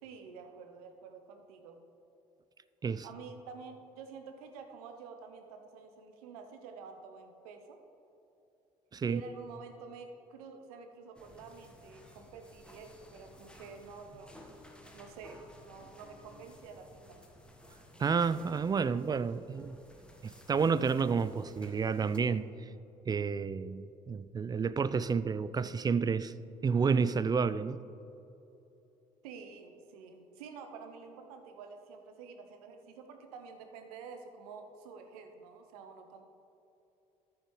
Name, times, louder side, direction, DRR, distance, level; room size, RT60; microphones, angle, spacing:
voice 1, 0.0-1.8 3.0-7.9 9.1-14.4 14.9-17.2 29.2-36.2, right 5 dB, 70° right, 0.9 m, -49 dB
sound 1, 11.1-22.2, left 1 dB, 5° left, 1.3 m, -55 dB
voice 2, 18.0-19.8 20.2-22.5 23.1-26.3 26.6-27.8, right 5 dB, 20° right, 0.3 m, -30 dB
14.0 x 6.1 x 3.2 m
figure-of-eight pair, 50°, 20 cm